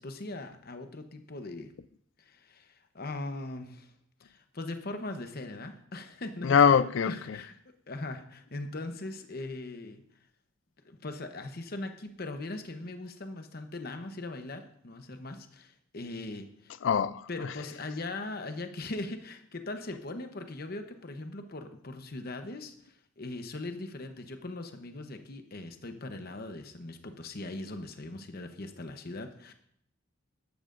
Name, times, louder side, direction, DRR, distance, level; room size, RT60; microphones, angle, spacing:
voice 1, 0.0-1.7 2.2-3.9 4.2-6.5 7.0-7.5 7.9-10.0 10.8-16.7 17.3-29.5, left 2 dB, 50° left, 0.9 m, -40 dB
voice 2, 6.4-7.4 16.8-17.7, left 7 dB, 70° left, 0.4 m, -24 dB
13.0 x 12.0 x 2.6 m
head